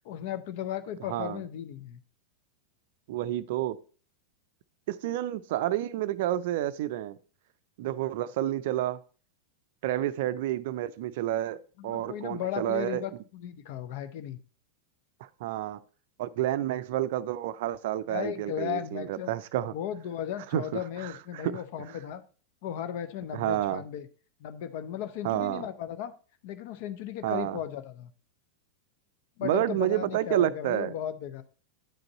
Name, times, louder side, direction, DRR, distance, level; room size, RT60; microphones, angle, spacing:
voice 1, 0.0-2.0 11.8-14.4 18.1-19.3 19.7-22.2 22.6-24.1 24.4-26.1 26.4-28.1 29.4-31.4, left 10 dB, 50° left, 0.7 m, -36 dB
voice 2, 1.1-1.4 3.1-3.8 4.9-7.2 7.8-9.0 9.8-13.0 15.4-15.8 16.2-19.7 20.5-21.6 23.3-23.8 25.2-25.7 27.2-27.6 29.4-30.9, right 13 dB, 50° right, 0.4 m, -30 dB
9.0 x 5.2 x 4.0 m
figure-of-eight pair, 90°, 0 cm